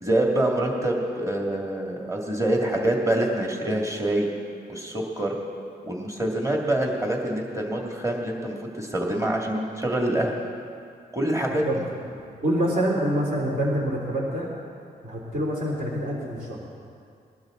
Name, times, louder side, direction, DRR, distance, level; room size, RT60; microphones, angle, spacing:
voice 1, 0.0-4.3 4.7-5.4 5.8-10.4 11.1-11.7, right 1 dB, 15° right, 0 dB, 2.3 m, -25 dB
voice 2, 11.5-14.5 15.0-16.6, equal, 55° right, -3 dB, 3.1 m, -26 dB
20.5 x 12.0 x 3.9 m, 2.3 s
cardioid pair, 65°, 18 cm